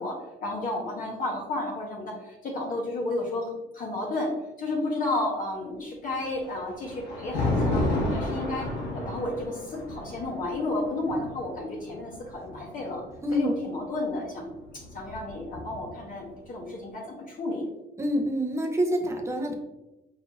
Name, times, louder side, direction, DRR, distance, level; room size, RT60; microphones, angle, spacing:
voice 1, 0.0-7.8 8.1-8.7 8.9-13.0 13.3-14.5 14.9-17.7, left 2 dB, 55° left, -3 dB, 1.4 m, -32 dB
Thunder, 6.1-13.3 14.4-16.1, left 1 dB, 85° left, 1.5 m, -32 dB
voice 2, 13.2-13.5 18.0-19.5, equal, 15° right, 3 dB, 0.8 m, -27 dB
4.9 x 3.9 x 2.7 m, 0.98 s
cardioid pair, 110°, 17 cm